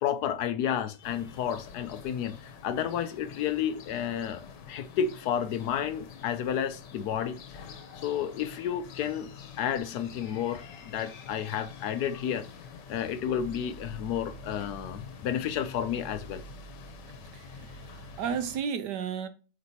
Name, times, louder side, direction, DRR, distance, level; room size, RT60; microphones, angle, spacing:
voice 1, 0.0-7.7 7.9-9.3 9.6-12.5 12.9-16.4, left 9 dB, 80° left, 0.9 m, -31 dB
sound 1, 1.0-18.6, left 4 dB, 60° left, 1.4 m, -46 dB
voice 2, 17.3-19.3, right 7 dB, 70° right, 1.0 m, -33 dB
8.3 x 5.1 x 2.8 m
omnidirectional pair, 2.3 m